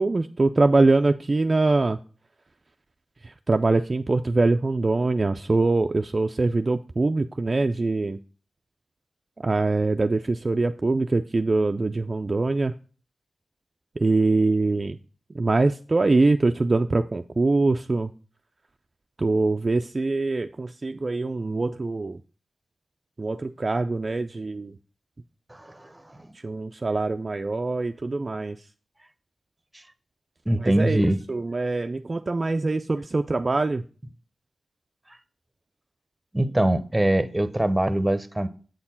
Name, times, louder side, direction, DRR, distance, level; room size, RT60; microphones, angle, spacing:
voice 1, 0.0-2.0 3.2-8.2 9.4-12.7 14.0-15.0 15.3-18.1 19.2-22.2 23.2-24.7 26.4-28.6 30.6-33.8, right 3 dB, 40° right, 0.3 m, -23 dB
voice 2, 25.5-26.3 29.7-29.8 30.5-31.2 36.3-38.5, right 1 dB, 15° right, 0.7 m, -23 dB
7.8 x 4.4 x 5.6 m
cardioid pair, 65°, 0 cm